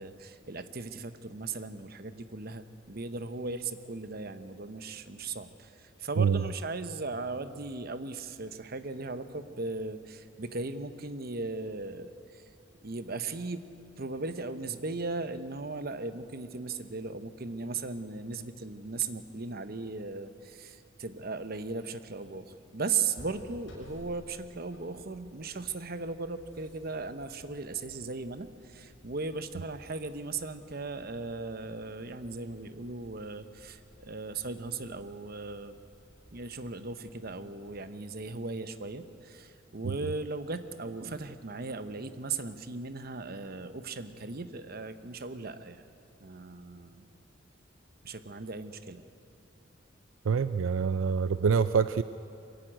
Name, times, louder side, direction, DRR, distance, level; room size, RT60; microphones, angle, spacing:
voice 1, 0.0-12.5 12.8-13.6 14.0-35.8 36.3-45.8 46.2-47.1 48.0-49.1, right 4 dB, 50° right, 11 dB, 0.9 m, -37 dB
sound 1, 23.1-38.9, equal, 60° left, 6.7 m, -57 dB
voice 2, 50.3-52.0, right 6 dB, 80° right, 13 dB, 0.4 m, -25 dB
23.5 x 15.0 x 9.1 m, 2.6 s
head